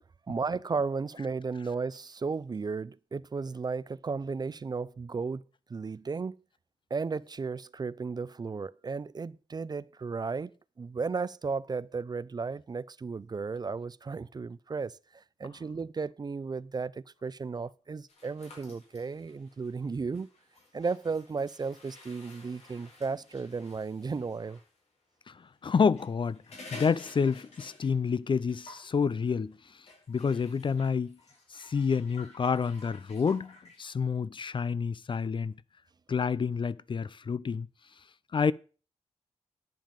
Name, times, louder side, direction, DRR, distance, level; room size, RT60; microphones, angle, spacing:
voice 1, 0.3-5.4 5.7-6.4 6.9-10.5 10.8-20.3 20.7-24.6, right 4 dB, 35° right, 0.4 m, -34 dB
sound 1, 18.1-24.7 25.8-28.1 28.4-28.9 29.9-33.8, left 2 dB, 70° left, 5.0 m, -52 dB
voice 2, 25.3-31.2 31.5-35.5 36.1-37.7 38.3-38.5, left 5 dB, 45° left, 0.5 m, -29 dB
10.5 x 7.4 x 5.2 m
cardioid pair, 70°, 12 cm